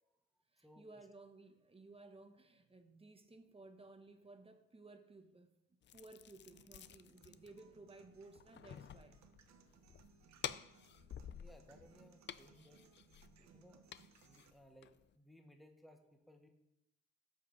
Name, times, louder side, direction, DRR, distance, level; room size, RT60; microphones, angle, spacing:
voice 1, 0.5-9.3 12.5-12.7 13.4-13.6, right 2 dB, 20° right, 1.0 m, -58 dB
sound 1, 5.8-15.1, left 9 dB, 40° left, 0.4 m, -52 dB
sound 2, 6.5-14.5, right 7 dB, 65° right, 1.0 m, -66 dB
voice 2, 11.3-12.8 13.5-16.5, left 1 dB, ahead, 1.1 m, -63 dB
13.0 x 5.4 x 4.0 m
cardioid pair, 90°, 30 cm